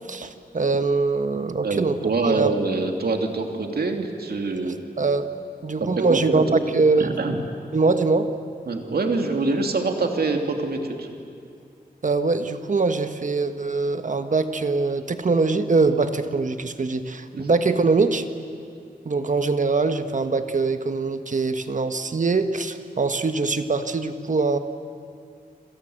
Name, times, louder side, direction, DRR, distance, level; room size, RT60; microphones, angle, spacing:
voice 1, 0.1-2.5 4.6-5.3 5.6-7.1 7.7-8.3 12.0-18.2 19.0-24.6, right 3 dB, 50° right, 8 dB, 1.5 m, -23 dB
voice 2, 1.6-4.8 5.8-6.6 7.0-7.4 8.7-11.1 17.3-17.5, right 3 dB, 80° right, 4 dB, 2.8 m, -25 dB
28.0 x 26.5 x 8.0 m, 2.3 s
wide cardioid pair, 120°, 16 cm